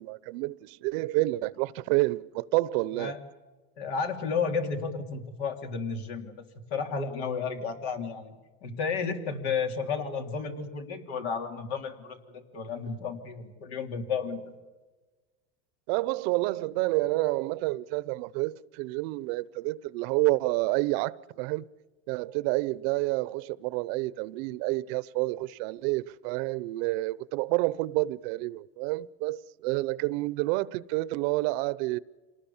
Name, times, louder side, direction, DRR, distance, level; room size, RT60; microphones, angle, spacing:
voice 1, 0.0-3.1 15.9-21.7 22.1-32.0, right 20 dB, 70° right, 0.8 m, -29 dB
voice 2, 3.8-6.4 6.7-8.3 8.6-14.4, left 5 dB, 85° left, 3.3 m, -32 dB
26.5 x 19.0 x 7.2 m
supercardioid pair, 140°, 31 cm